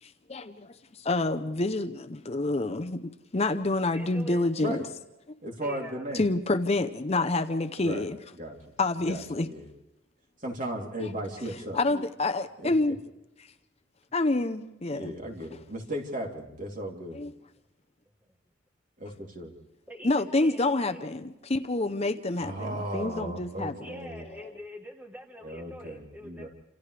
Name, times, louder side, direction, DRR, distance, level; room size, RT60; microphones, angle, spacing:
voice 1, 0.0-4.8 6.1-8.2 8.8-9.5 11.7-13.0 14.1-15.1 17.1-17.3 20.0-23.8, left 2 dB, 30° left, 0.7 m, -28 dB
voice 2, 3.8-4.5 5.6-6.1 11.9-12.0 18.2-18.3 19.9-21.0 23.8-26.5, equal, 10° right, 1.3 m, -45 dB
voice 3, 5.4-6.3 7.8-8.1 8.4-8.7 9.1-9.7 10.4-11.8 12.6-12.7 14.9-17.2 19.0-19.5 22.4-24.2 25.4-26.5, right 1 dB, 40° right, 3.3 m, -36 dB
29.0 x 27.5 x 3.4 m
head